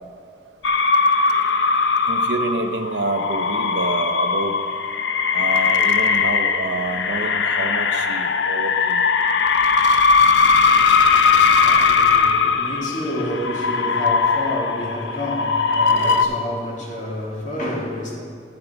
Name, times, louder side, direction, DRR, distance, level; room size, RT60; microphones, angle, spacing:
sound 1, 0.6-16.2, left 5 dB, 80° left, 0.5 m, -19 dB
voice 1, 2.1-4.6 5.3-9.0, right 2 dB, 75° right, 0.7 m, -27 dB
voice 2, 10.4-18.2, left 1 dB, 45° left, 2.1 m, -29 dB
13.5 x 7.9 x 3.4 m
head